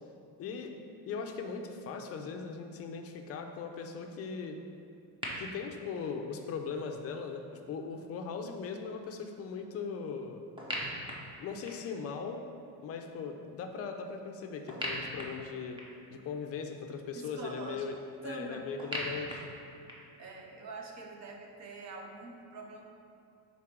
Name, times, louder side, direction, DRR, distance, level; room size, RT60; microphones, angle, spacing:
voice 1, 0.4-0.7 1.1-4.6 5.4-10.4 11.4-12.4 12.8-15.8 16.1-17.9 18.2-19.5, left 5 dB, 40° left, 4 dB, 0.5 m, -39 dB
sound 1, 5.2-5.3 10.6-12.0 14.7-16.1 18.8-20.2, equal, 15° right, 0.8 m, -39 dB
voice 2, 17.1-17.9 18.2-18.7 20.2-22.9, right 3 dB, 45° right, 2 dB, 0.8 m, -44 dB
4.9 x 4.0 x 5.9 m, 2.7 s
cardioid pair, 160°, 39 cm